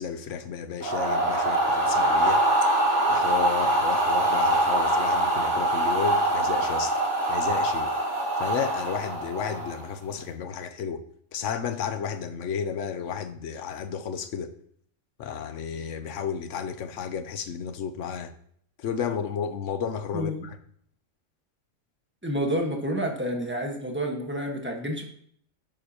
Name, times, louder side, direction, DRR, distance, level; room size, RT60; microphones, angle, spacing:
voice 1, 0.0-2.4 3.1-6.9 7.3-7.9 8.4-11.0 11.3-14.5 15.2-18.3 18.8-20.3, left 7 dB, 70° left, 1.0 m, -32 dB
sound 1, 0.8-9.9, right 1 dB, 65° right, 2.3 m, -24 dB
voice 2, 20.1-20.5 22.2-25.0, equal, 10° right, 1.3 m, -29 dB
11.0 x 7.6 x 2.9 m
omnidirectional pair, 1.3 m